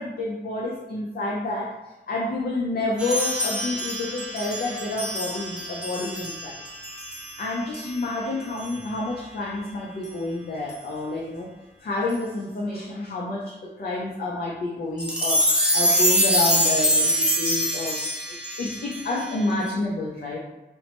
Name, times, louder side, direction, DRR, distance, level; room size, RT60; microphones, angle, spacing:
voice 1, 0.0-1.8 2.1-6.6 7.4-11.5 11.8-15.4 15.7-18.0 18.6-20.4, left 2 dB, 50° left, -3 dB, 0.4 m, -29 dB
sound 1, 3.0-7.4 7.7-7.9 8.6-8.8 10.0-10.1 10.7-10.8 12.1-12.2 15.0-19.7, equal, 5° right, 0.5 m, -25 dB
3.0 x 2.0 x 2.8 m, 1.1 s
wide cardioid pair, 170°, 19 cm